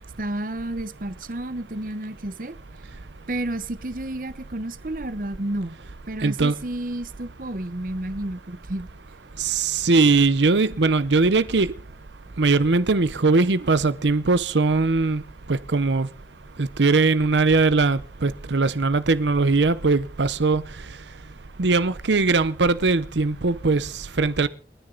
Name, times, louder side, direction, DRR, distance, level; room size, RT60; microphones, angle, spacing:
voice 1, 0.2-2.6 3.3-5.8 6.1-8.9, right 1 dB, 50° right, 0.9 m, -31 dB
voice 2, 6.2-6.5 9.4-11.7 12.4-15.2 15.5-16.1 16.6-20.6 21.6-24.5, right 3 dB, 90° right, 0.8 m, -20 dB
29.5 x 10.0 x 3.9 m
head